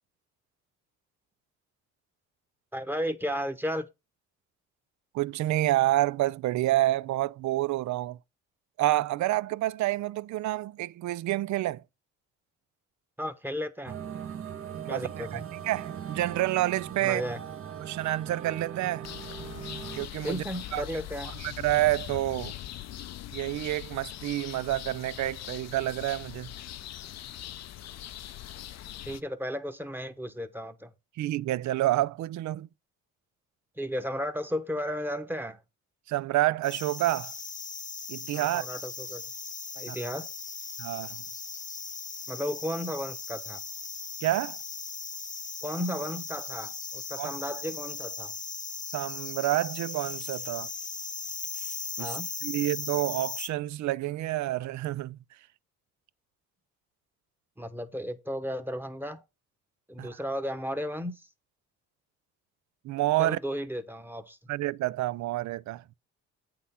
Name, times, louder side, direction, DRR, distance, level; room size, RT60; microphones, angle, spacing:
voice 1, 2.7-3.9 13.2-14.0 14.9-15.5 17.0-17.4 20.2-21.3 29.0-30.9 33.8-35.6 38.3-39.2 39.7-40.3 42.3-43.6 45.6-48.3 52.0-52.3 57.6-59.2 59.9-61.3 63.2-64.4, equal, 5° right, 1.0 m, -34 dB
voice 2, 5.1-8.2 8.8-11.8 14.8-17.2 17.8-19.1 20.0-20.4 20.7-20.8 21.4-22.5 23.3-26.5 31.2-32.7 36.1-37.3 38.1-38.6 39.9-40.0 40.8-41.2 44.2-44.6 47.2-47.3 48.9-50.7 52.0-52.2 52.4-55.2 60.0-60.1 62.8-63.4 64.5-65.8, right 15 dB, 70° right, 0.5 m, -28 dB
sound 1, 13.9-20.1, right 8 dB, 45° right, 0.9 m, -39 dB
sound 2, 19.0-29.2, left 12 dB, 60° left, 0.6 m, -41 dB
sound 3, 36.6-53.5, left 4 dB, 25° left, 0.8 m, -38 dB
8.5 x 3.8 x 5.7 m
cardioid pair, 90°, 30 cm